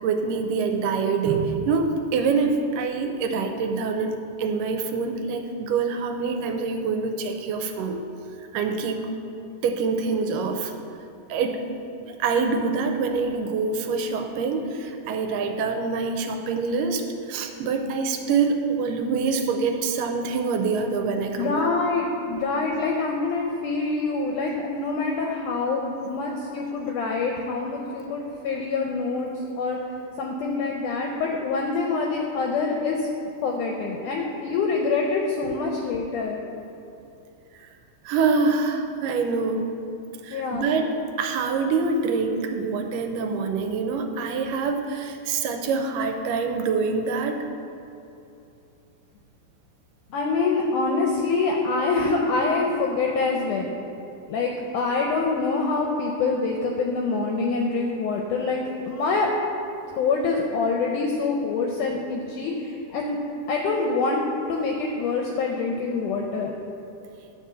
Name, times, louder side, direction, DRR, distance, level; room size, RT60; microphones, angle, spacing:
voice 1, 0.0-8.0 8.5-9.1 9.6-10.7 11.3-11.6 12.0-21.7 38.1-39.7 40.2-40.9 41.2-47.4, right 4 dB, 75° right, 5 dB, 2.1 m, -25 dB
voice 2, 21.4-29.3 29.6-29.8 30.2-33.0 33.4-36.4 40.3-40.7 50.1-53.7 54.3-58.6 58.9-59.3 60.0-63.2 63.5-64.2 64.5-66.6, left 4 dB, 80° left, 0 dB, 1.9 m, -25 dB
10.0 x 4.2 x 7.4 m, 2.8 s
omnidirectional pair, 4.2 m